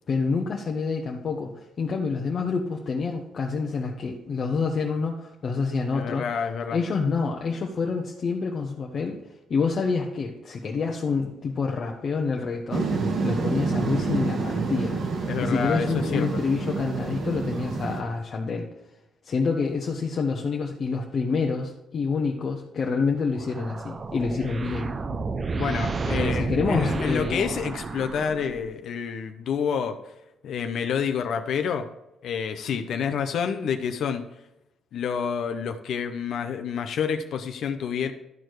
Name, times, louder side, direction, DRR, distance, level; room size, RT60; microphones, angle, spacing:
voice 1, 0.1-6.3 6.7-9.2 9.5-18.7 19.2-24.9 26.1-27.4, left 4 dB, 50° left, 0 dB, 1.0 m, -27 dB
voice 2, 5.9-6.8 15.3-16.3 25.5-30.0 30.4-31.9 32.2-34.2 34.9-38.1, left 7 dB, 70° left, 7 dB, 0.7 m, -28 dB
sound 1, 12.7-18.0, right 4 dB, 65° right, 1.7 m, -28 dB
sound 2, 23.4-28.8, right 4 dB, 35° right, 0.7 m, -31 dB
12.0 x 4.5 x 4.7 m, 0.90 s
cardioid pair, 90°, 0 cm